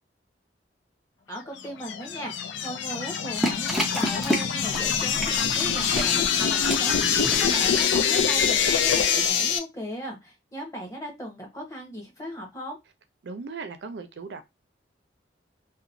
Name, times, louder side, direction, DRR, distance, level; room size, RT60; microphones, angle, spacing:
voice 1, 1.3-12.8, equal, 20° left, 1.0 m, -37 dB
sound 1, 1.6-9.6, left 7 dB, 90° left, 0.5 m, -24 dB
sound 2, 3.4-9.3, equal, ahead, 0.5 m, -32 dB
voice 2, 13.2-14.4, right 4 dB, 70° right, 0.4 m, -37 dB
2.9 x 2.1 x 2.5 m
head